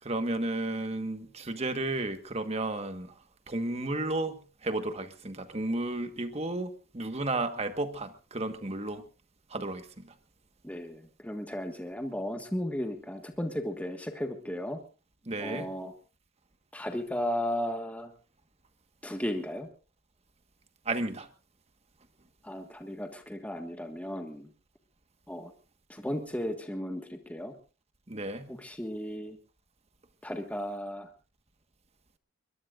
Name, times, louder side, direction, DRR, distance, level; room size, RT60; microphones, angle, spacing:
voice 1, 0.0-3.2 3.5-9.0 9.5-10.1 15.2-15.7 20.8-21.3 28.1-28.5, right 2 dB, 30° right, 8 dB, 1.4 m, -33 dB
voice 2, 10.6-14.8 15.4-15.9 16.7-18.1 19.0-19.7 22.4-24.5 25.3-25.5 25.9-27.5 28.5-29.4 30.2-31.1, equal, 5° left, 5 dB, 1.6 m, -35 dB
22.0 x 22.0 x 2.5 m, 0.35 s
head